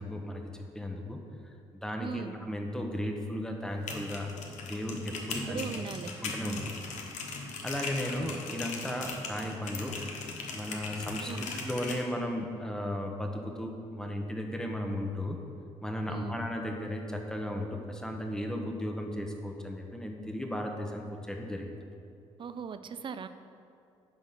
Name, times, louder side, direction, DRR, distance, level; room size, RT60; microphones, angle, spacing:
voice 1, 0.0-1.5 1.8-4.3 4.7-5.6 6.2-6.6 7.4-10.0 10.5-15.4 15.8-21.8, left 1 dB, 5° left, 3 dB, 1.0 m, -35 dB
voice 2, 2.0-2.3 5.5-6.1 6.4-6.7 11.3-11.5 16.1-16.4 22.4-23.3, right 6 dB, 45° right, 11 dB, 0.5 m, -39 dB
sound 1, 3.7-12.0, left 4 dB, 80° left, 1.1 m, -39 dB
10.5 x 4.0 x 5.8 m, 2.5 s
cardioid pair, 85°, 12 cm